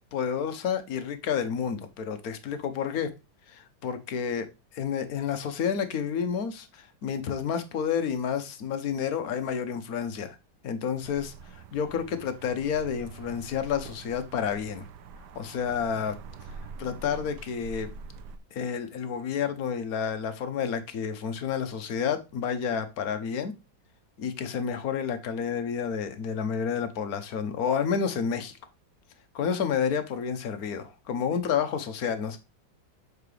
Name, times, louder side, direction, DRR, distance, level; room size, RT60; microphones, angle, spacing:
voice 1, 0.1-3.1 3.5-4.5 4.7-10.4 10.6-14.8 15.3-16.2 16.8-17.9 18.5-23.5 24.2-28.6 29.3-32.4, left 7 dB, 55° left, 1.2 m, -30 dB
sound 1, 11.0-18.4, right 4 dB, 65° right, 1.2 m, -45 dB
7.1 x 4.8 x 3.3 m
omnidirectional pair, 2.2 m